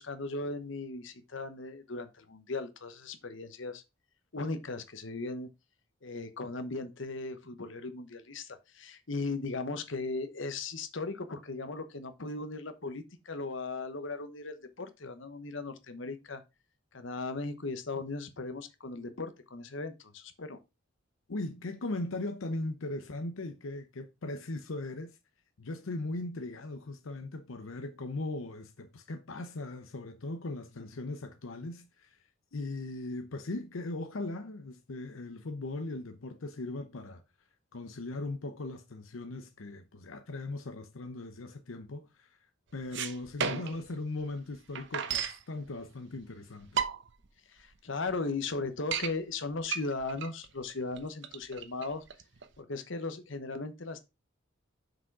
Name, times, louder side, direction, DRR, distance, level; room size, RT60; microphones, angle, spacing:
voice 1, 0.0-3.8 4.3-5.5 6.0-16.4 16.9-20.6 47.5-52.0 52.6-54.0, left 3 dB, 65° left, 1.0 m, -37 dB
voice 2, 21.3-25.2 25.6-32.2 32.5-37.2 37.7-42.4 42.7-46.8, left 2 dB, 85° left, 0.8 m, -39 dB
sound 1, 42.8-43.9 44.2-44.3 44.5-45.4 46.2-46.3 46.6-47.2 47.7-47.8 48.1-48.2 48.6-49.1 49.6-52.5, right 7 dB, 60° right, 0.8 m, -34 dB
6.2 x 5.1 x 4.6 m
head